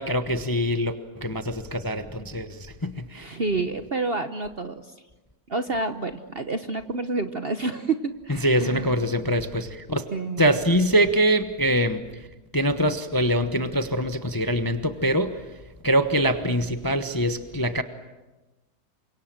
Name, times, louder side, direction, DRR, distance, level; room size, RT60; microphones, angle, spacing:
voice 1, 0.0-3.3 8.4-10.0 10.4-12.2 12.5-15.4 15.8-17.8, equal, 15° left, 8 dB, 0.8 m, -24 dB
voice 2, 3.1-4.9 5.5-8.9 10.1-10.5, right 3 dB, 40° right, 9 dB, 1.0 m, -29 dB
28.5 x 25.0 x 7.6 m, 1.1 s
omnidirectional pair, 1.9 m